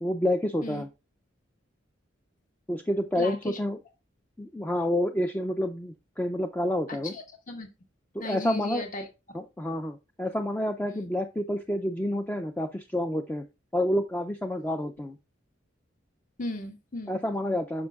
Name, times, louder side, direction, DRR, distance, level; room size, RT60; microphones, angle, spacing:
voice 1, 0.0-0.9 2.7-3.8 4.4-7.1 8.1-8.8 9.3-13.4 13.7-15.2 17.1-17.9, left 1 dB, 10° left, 7 dB, 0.4 m, -29 dB
voice 2, 3.2-3.6 6.9-7.7 8.2-9.1 10.9-11.1 16.4-17.2, left 2 dB, 40° left, 5 dB, 1.6 m, -36 dB
9.6 x 6.2 x 2.3 m, 0.27 s
head